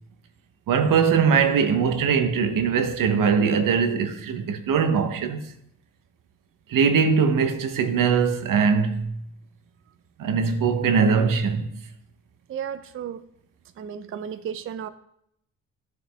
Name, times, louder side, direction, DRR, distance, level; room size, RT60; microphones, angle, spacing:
voice 1, 0.7-5.4 6.7-9.2 10.2-11.7, right 6 dB, 80° right, 0.9 m, -21 dB
voice 2, 12.5-13.2 13.8-14.9, right 8 dB, 40° right, 0.4 m, -33 dB
12.5 x 4.7 x 3.4 m
wide cardioid pair, 135°, 32 cm